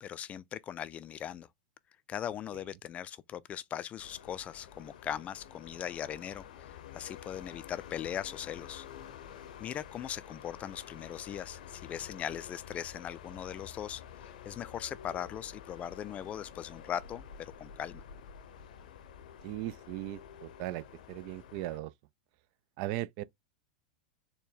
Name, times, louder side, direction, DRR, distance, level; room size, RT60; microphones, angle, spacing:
voice 1, 0.0-1.5 2.1-8.9 9.6-14.0 14.4-18.0, left 10 dB, 30° left, 0.3 m, -39 dB
sound 1, 4.0-21.8, left 8 dB, 70° left, 0.7 m, -49 dB
voice 2, 19.4-21.9 22.8-23.2, right 15 dB, 55° right, 0.4 m, -38 dB
4.2 x 2.2 x 3.6 m
hypercardioid pair, 100°, 5 cm